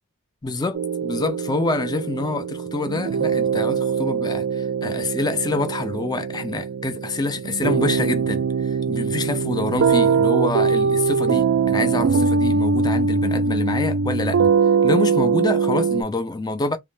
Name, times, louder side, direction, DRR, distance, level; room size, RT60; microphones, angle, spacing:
voice 1, 0.4-14.4 14.8-16.8, left 3 dB, 20° left, 0.4 m, -26 dB
sound 1, 0.7-16.0, right 5 dB, 70° right, 0.4 m, -22 dB
2.8 x 2.1 x 3.1 m
head